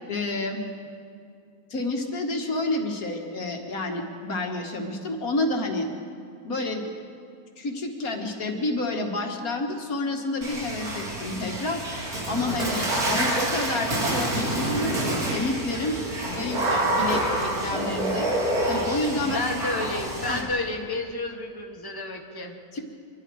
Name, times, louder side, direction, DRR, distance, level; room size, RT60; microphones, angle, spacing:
voice 1, 0.1-0.6 1.7-5.9 6.4-6.9 7.6-11.8 12.3-18.3 18.7-19.4 20.3-20.4 22.7-22.8, left 2 dB, 75° left, 2 dB, 2.3 m, -29 dB
Water / Splash splatter, 10.4-20.4, right 1 dB, 85° right, 3.5 m, -27 dB
voice 2, 19.2-22.6, left 2 dB, 15° left, 2 dB, 1.5 m, -31 dB
25.5 x 22.0 x 4.9 m, 2.3 s
omnidirectional pair, 1.5 m